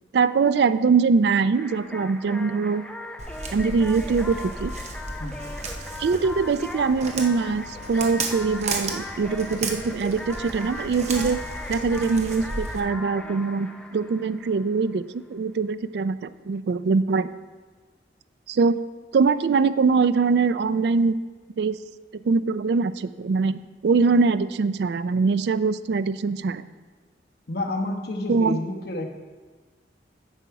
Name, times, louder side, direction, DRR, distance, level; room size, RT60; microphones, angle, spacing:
voice 1, 0.1-2.8 3.5-4.7 6.0-11.4 11.7-15.0 15.3-17.3 18.5-18.8 19.1-21.2 21.6-21.8 22.1-26.6 28.3-28.6, right 4 dB, 65° right, 14 dB, 0.3 m, -22 dB
sound 1, 1.5-15.0, left 1 dB, 5° left, 0.4 m, -39 dB
Walk footsteps, 3.2-12.8, right 3 dB, 40° right, 0.9 m, -34 dB
voice 2, 27.5-29.1, left 1 dB, 60° left, 3 dB, 1.0 m, -29 dB
9.8 x 6.9 x 4.7 m, 1.4 s
head